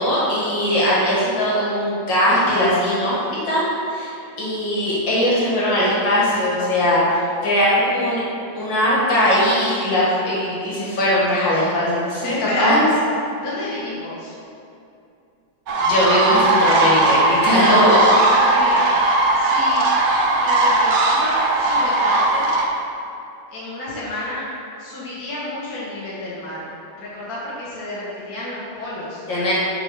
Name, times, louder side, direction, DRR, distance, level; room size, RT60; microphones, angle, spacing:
voice 1, 0.0-3.2 3.5-8.2 8.5-12.3 12.6-12.8 15.9-18.0 29.3-29.5, equal, 65° left, -7 dB, 2.6 m, -19 dB
voice 2, 12.2-12.8 13.4-14.4 18.3-18.9 19.4-19.9 20.4-22.5 23.5-24.5 24.8-26.7 27.0-29.2, left 2 dB, 50° left, -8 dB, 1.8 m, -30 dB
sound 1, 15.7-22.7, right 2 dB, 75° right, 0.6 m, -18 dB
7.5 x 5.8 x 4.8 m, 2.6 s
omnidirectional pair, 2.2 m